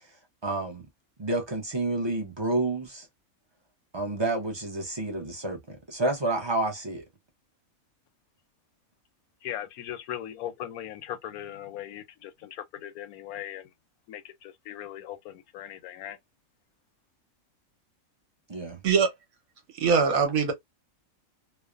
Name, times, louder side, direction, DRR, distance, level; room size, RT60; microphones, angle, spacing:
voice 1, 0.4-0.8 1.2-3.1 3.9-7.0 18.5-18.8, right 2 dB, 30° right, 0.5 m, -29 dB
voice 2, 9.4-12.5 12.8-13.6 14.1-14.3 14.7-16.2, left 11 dB, 85° left, 1.0 m, -38 dB
voice 3, 19.8-20.5, right 5 dB, 80° right, 1.3 m, -22 dB
3.1 x 2.0 x 2.3 m
omnidirectional pair, 1.5 m